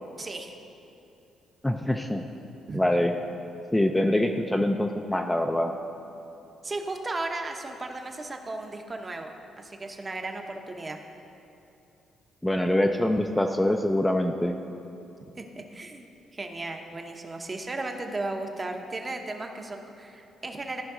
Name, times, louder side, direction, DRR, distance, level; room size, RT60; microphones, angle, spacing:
voice 1, 0.2-0.6 2.7-2.8 6.6-11.0 15.4-16.0 16.3-20.8, right 2 dB, 30° right, 4 dB, 0.8 m, -35 dB
voice 2, 1.6-2.2 2.7-3.1 3.7-5.7 12.4-14.5, left 1 dB, 10° left, 4 dB, 0.4 m, -24 dB
14.0 x 5.2 x 3.8 m, 2.8 s
cardioid pair, 90°, 0 cm